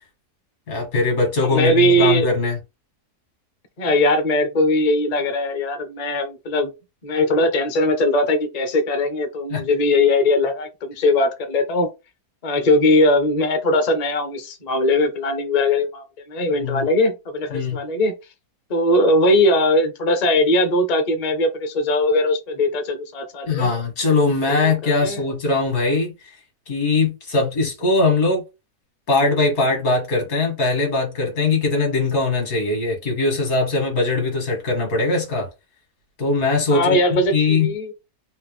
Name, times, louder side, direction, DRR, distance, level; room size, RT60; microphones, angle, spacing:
voice 1, 0.7-2.6 9.5-9.6 16.6-16.9 17.5-17.8 23.5-26.4 26.7-28.5 29.1-35.5 36.2-37.7, left 3 dB, 65° left, 2.1 m, -21 dB
voice 2, 1.5-2.3 3.8-6.7 7.0-11.9 12.4-18.1 18.7-23.7 24.5-25.2 36.7-37.9, left 1 dB, 45° left, 0.5 m, -20 dB
4.4 x 2.1 x 3.2 m
omnidirectional pair, 1.7 m